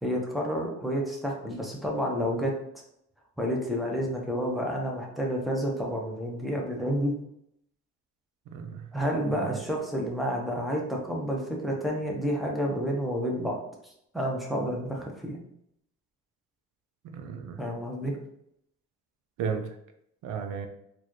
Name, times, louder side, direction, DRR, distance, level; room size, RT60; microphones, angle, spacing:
voice 1, 0.0-2.5 3.4-7.1 8.9-13.6 13.8-15.4 17.6-18.1, equal, ahead, -1 dB, 1.0 m, -30 dB
voice 2, 8.5-8.9 9.3-9.5 17.1-17.6 19.4-19.7 20.2-20.7, right 6 dB, 85° right, 6 dB, 0.6 m, -34 dB
4.0 x 2.6 x 3.1 m, 0.74 s
cardioid pair, 90°, 30 cm